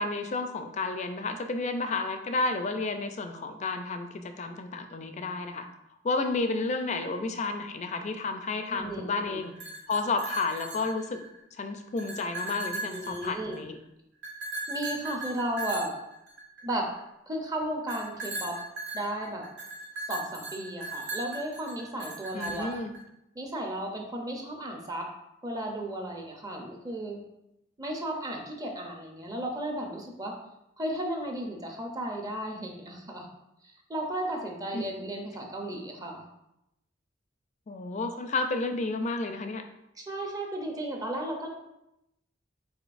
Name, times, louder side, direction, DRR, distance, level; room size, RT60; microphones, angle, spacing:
voice 1, 0.0-5.7 6.0-9.5 9.9-11.2 11.6-13.8 22.3-22.9 34.7-34.8 37.7-39.6, left 3 dB, 40° left, 7 dB, 0.4 m, -31 dB
voice 2, 8.7-9.4 12.9-13.6 14.7-16.0 16.6-16.9 17.3-18.6 18.9-19.5 20.1-22.7 23.3-25.1 25.4-27.2 27.8-30.3 30.8-33.3 33.6-36.3 40.0-41.5, right 1 dB, 20° right, 1 dB, 0.6 m, -34 dB
sound 1, 9.4-11.4 11.8-13.7 14.2-16.9 17.9-23.0, right 2 dB, 80° right, 1.1 m, -38 dB
5.0 x 4.0 x 2.5 m, 0.85 s
head